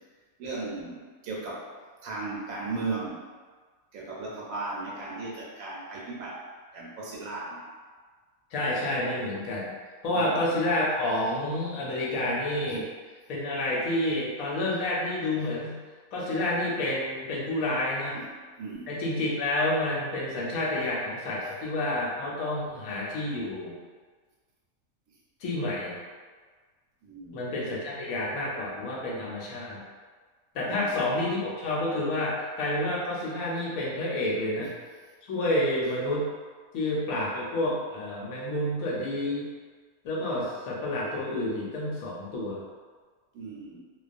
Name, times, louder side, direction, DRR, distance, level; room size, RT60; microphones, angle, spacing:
voice 1, 0.4-1.7 2.0-3.2 3.9-6.4 6.7-7.6 10.1-10.4 12.1-12.4 12.7-12.8 18.1-18.3 18.6-18.9 20.8-20.9 21.4-21.5 27.0-27.5 30.7-31.0 34.6-34.7 43.3-43.8, right 3 dB, 80° right, -4 dB, 1.0 m, -37 dB
voice 2, 8.5-9.7 10.0-12.8 13.3-15.7 16.1-18.2 18.9-23.8 25.4-26.0 27.3-29.8 30.5-34.7 35.2-36.3 36.7-39.5 40.0-42.6, left 1 dB, 85° left, -4 dB, 1.1 m, -29 dB
2.3 x 2.3 x 2.5 m, 1.5 s
omnidirectional pair, 1.5 m